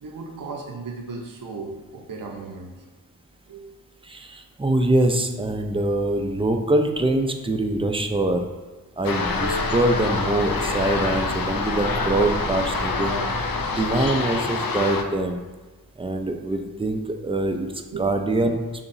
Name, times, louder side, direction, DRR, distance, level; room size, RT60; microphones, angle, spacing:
voice 1, 0.0-2.7 3.5-3.7 17.9-18.1, right 4 dB, 65° right, 1 dB, 0.7 m, -35 dB
voice 2, 4.1-8.5 9.0-13.2 13.8-15.4 16.0-17.7 18.0-18.6, right 2 dB, 15° right, 5 dB, 0.5 m, -24 dB
sound 1, 9.0-15.0, left 4 dB, 70° left, 0.5 m, -26 dB
sound 2, 9.2-14.4, equal, 35° left, 1.3 m, -34 dB
6.9 x 2.9 x 2.7 m, 1.3 s
wide cardioid pair, 55°, 36 cm